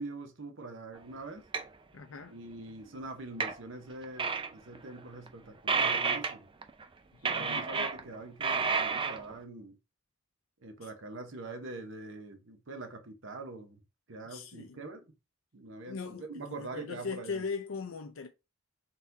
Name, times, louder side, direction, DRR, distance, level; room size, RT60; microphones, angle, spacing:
voice 1, 0.0-1.4 2.3-6.5 7.2-9.8 10.6-13.8 14.1-15.1 15.5-16.0 16.3-17.4, right 2 dB, 65° right, 0.9 m, -44 dB
sound 1, 1.5-1.6 3.4-3.6 4.0-4.5 4.8-4.9 5.3-5.4 5.7-6.4 6.6-6.8 7.3-8.1 8.4-9.3, right 5 dB, 25° right, 0.5 m, -30 dB
voice 2, 1.9-2.3 7.3-7.7 10.8-10.9 14.2-14.8 15.8-18.3, left 5 dB, 80° left, 0.5 m, -39 dB
4.2 x 4.0 x 2.6 m
head